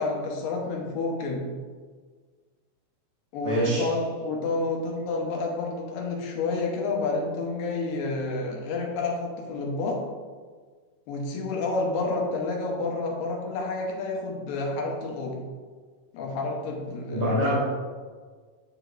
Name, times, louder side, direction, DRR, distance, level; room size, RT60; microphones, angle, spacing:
voice 1, 0.0-1.5 3.3-10.0 11.1-15.4 16.1-17.6, left 3 dB, 80° left, -1 dB, 2.6 m, -29 dB
voice 2, 3.4-3.9 17.1-17.6, right 1 dB, 30° left, -7 dB, 0.5 m, -25 dB
9.1 x 4.8 x 2.5 m, 1.5 s
omnidirectional pair, 4.0 m